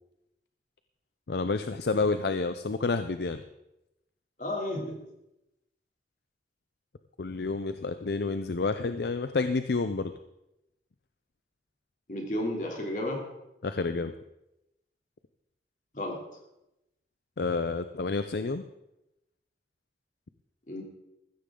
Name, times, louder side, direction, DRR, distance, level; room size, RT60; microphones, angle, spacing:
voice 1, 1.3-3.4 7.2-10.1 13.6-14.1 17.4-18.6, left 3 dB, 65° left, 10 dB, 0.5 m, -29 dB
voice 2, 4.4-5.0 12.1-13.2 15.9-16.2 20.7-20.8, left 1 dB, 45° left, 0 dB, 3.1 m, -32 dB
15.0 x 13.5 x 3.8 m, 0.88 s
head